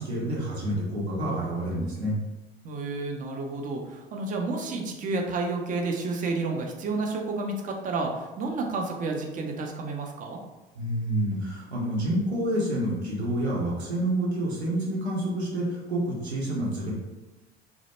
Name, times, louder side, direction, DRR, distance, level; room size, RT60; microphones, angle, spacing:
voice 1, 0.0-2.2 10.8-16.9, right 1 dB, 85° right, -4 dB, 0.7 m, -28 dB
voice 2, 2.6-10.4, right 3 dB, 25° right, 2 dB, 0.4 m, -30 dB
2.1 x 2.1 x 2.9 m, 1.1 s
figure-of-eight pair, 65°, 32 cm